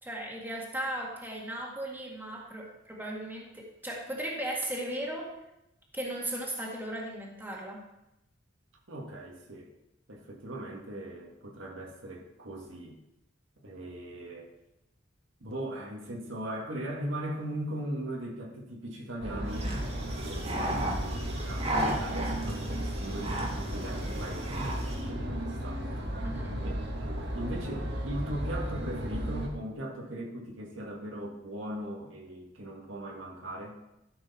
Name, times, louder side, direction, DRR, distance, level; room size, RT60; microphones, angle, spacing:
voice 1, 0.0-5.3 5.9-7.8 26.2-26.6, right 1 dB, 10° right, -2 dB, 1.8 m, -36 dB
voice 2, 8.9-9.7 10.1-13.0 13.6-14.5 15.4-25.9 26.6-33.8, right 1 dB, 80° right, 0 dB, 1.8 m, -39 dB
sound 1, 19.2-29.5, equal, 60° right, 1.6 m, -34 dB
sound 2, 19.5-25.0, right 1 dB, 30° right, 1.6 m, -35 dB
12.5 x 6.3 x 4.3 m, 0.87 s
head